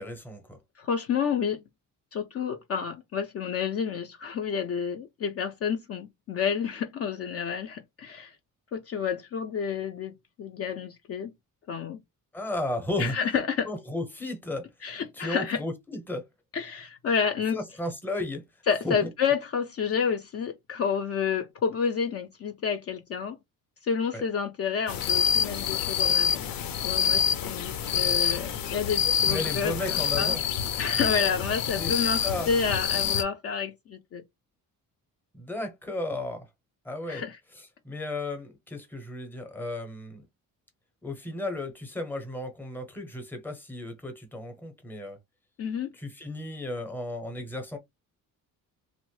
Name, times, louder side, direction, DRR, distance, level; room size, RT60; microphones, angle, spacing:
voice 1, 0.0-0.6 12.3-13.1 13.6-14.7 15.1-16.2 17.5-18.4 18.8-19.1 24.1-24.2 29.2-30.4 31.7-31.9 32.2-32.5 35.3-36.5 36.8-37.2 37.5-40.2 41.0-45.2 45.9-47.8, left 2 dB, 5° left, 0.6 m, -34 dB
voice 2, 0.8-1.6 2.1-8.4 8.7-11.3 11.7-12.0 13.0-13.7 14.8-15.6 16.5-17.6 18.7-23.4 23.8-26.4 26.8-30.3 30.8-34.2 37.1-37.4 45.6-45.9, left 6 dB, 45° left, 0.4 m, -30 dB
sound 1, 24.9-33.2, left 8 dB, 80° left, 0.7 m, -27 dB
3.0 x 2.0 x 3.0 m
cardioid pair, 150°, 34 cm